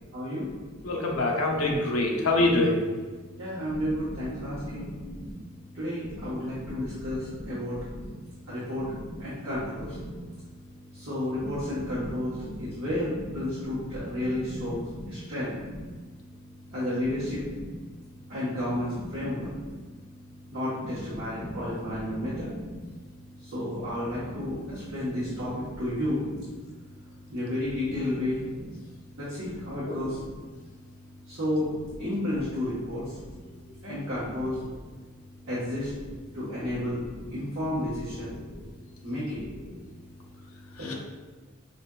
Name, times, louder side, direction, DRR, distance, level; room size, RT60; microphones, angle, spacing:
voice 1, 0.1-0.5 3.4-5.0 5.7-7.8 8.5-8.9 9.2-10.0 10.9-12.4 12.6-14.8 15.1-15.6 16.7-17.4 18.3-19.5 20.5-22.5 23.4-26.2 27.3-28.4 29.2-30.2 31.3-31.7 32.0-33.2 33.8-34.6 35.4-35.9 36.3-37.0 37.3-38.4 39.0-39.5 40.8-40.9, left 1 dB, 60° right, -11 dB, 1.1 m, -31 dB
voice 2, 0.8-2.8 40.9-41.0, left 2 dB, 85° left, 0 dB, 0.6 m, -24 dB
4.9 x 2.5 x 2.2 m, 1.4 s
head